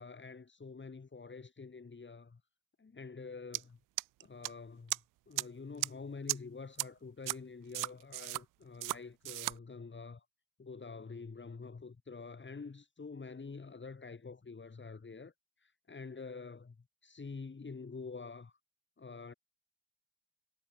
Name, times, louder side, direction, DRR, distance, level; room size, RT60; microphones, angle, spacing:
voice 1, 0.0-2.4 2.8-3.8 4.2-5.0 5.3-10.2 10.6-15.3 15.6-16.7 17.0-18.5 19.0-19.3, left 4 dB, 35° left, 5.7 m, -47 dB
sound 1, 3.5-3.6 4.0-4.5 4.9-5.0 5.4-5.5 5.8-5.9 6.3-6.4 6.8-6.9 7.3-7.4 7.7-8.4 8.8-9.0 9.2-9.5, right 18 dB, 75° right, 0.9 m, -34 dB
hypercardioid pair, 50°, 32 cm